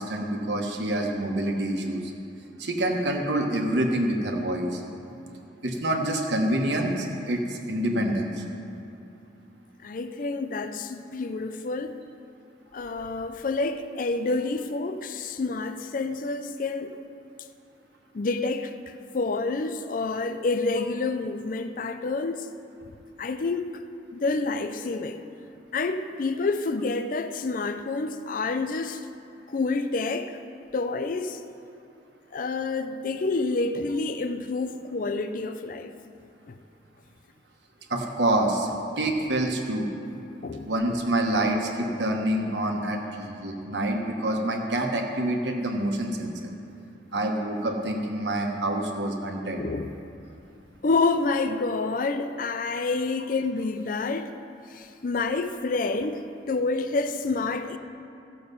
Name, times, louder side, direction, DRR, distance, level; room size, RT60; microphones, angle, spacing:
voice 1, 0.0-2.1 2.6-4.8 5.6-8.4 37.9-38.7 39.0-39.9 40.7-46.5 47.1-49.6, right 1 dB, 70° right, 2 dB, 1.3 m, -27 dB
voice 2, 9.8-12.0 12.7-17.0 18.1-22.5 23.2-23.8 24.1-25.2 25.7-29.0 29.5-30.4 30.7-31.4 32.3-35.9 36.5-36.6 40.4-40.7 49.4-49.9 50.8-54.3 54.7-57.8, left 3 dB, 50° left, 9 dB, 0.4 m, -28 dB
15.0 x 6.9 x 5.4 m, 2.6 s
head